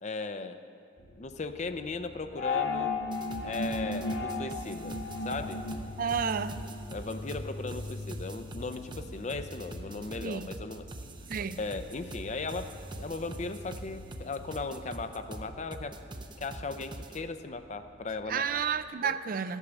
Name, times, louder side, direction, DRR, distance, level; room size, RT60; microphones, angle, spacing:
voice 1, 0.0-0.6 1.2-2.9 3.4-4.9 5.2-5.6 6.9-10.9 11.6-12.7 13.0-16.0 16.4-18.6 19.0-19.1, left 3 dB, 40° left, 0.6 m, -37 dB
sound 1, 1.0-18.9, left 1 dB, 55° left, 1.6 m, -47 dB
sound 2, 2.4-7.0, left 3 dB, 85° left, 1.0 m, -34 dB
sound 3, 3.1-17.2, right 1 dB, 25° right, 0.7 m, -44 dB
voice 2, 6.0-6.6 10.2-10.5 11.3-11.6 18.3-19.6, right 6 dB, 55° right, 0.4 m, -31 dB
14.5 x 8.3 x 7.0 m
head